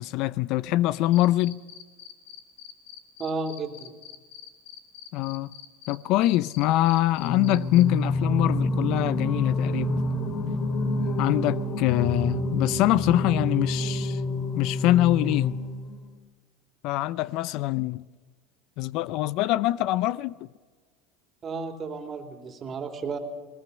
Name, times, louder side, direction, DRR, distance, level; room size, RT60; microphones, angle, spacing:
voice 1, 0.0-1.6 5.1-5.5 5.9-10.0 11.2-14.2 14.5-15.6 16.8-18.0 18.8-20.3, left 15 dB, 60° left, 0.5 m, -24 dB
sound 1, 0.9-6.0 6.2-7.8, left 12 dB, 80° left, 2.2 m, -44 dB
voice 2, 3.2-3.9 21.4-23.2, right 4 dB, 35° right, 2.9 m, -33 dB
Singing, 7.2-16.1, left 1 dB, 40° left, 2.2 m, -28 dB
20.5 x 19.5 x 6.8 m
supercardioid pair, 105°, 0 cm